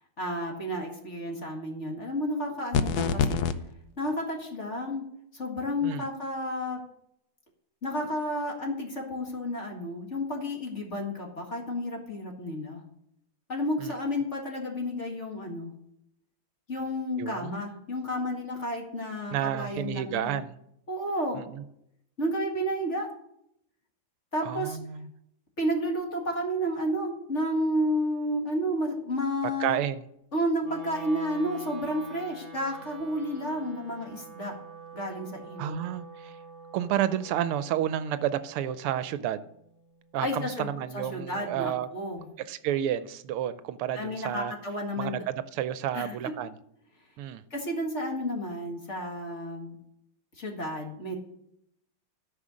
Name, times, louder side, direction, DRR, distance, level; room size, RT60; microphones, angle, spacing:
voice 1, 0.2-3.4 4.0-5.0 5.3-6.8 7.8-12.8 13.5-15.7 16.7-20.4 20.9-21.4 22.2-23.1 24.3-24.8 25.6-29.8 30.3-34.6 34.9-35.8 40.2-42.3 44.0-45.2 45.9-46.2 47.5-49.8 50.3-51.2, equal, 35° left, 1 dB, 2.0 m, -31 dB
sound 1, 2.7-3.5, left 7 dB, 70° left, 0.9 m, -25 dB
voice 2, 17.2-17.6 19.3-20.6 21.5-21.6 24.4-25.1 29.6-30.0 35.6-36.4 36.7-39.4 40.1-41.9 42.5-44.5 45.0-46.5 47.2-47.4, right 11 dB, 80° right, 13 dB, 1.5 m, -30 dB
Wind instrument woodwind instrument, 30.6-40.8, right 4 dB, 20° right, 1.8 m, -47 dB
13.5 x 5.7 x 6.3 m, 0.75 s
omnidirectional pair, 2.4 m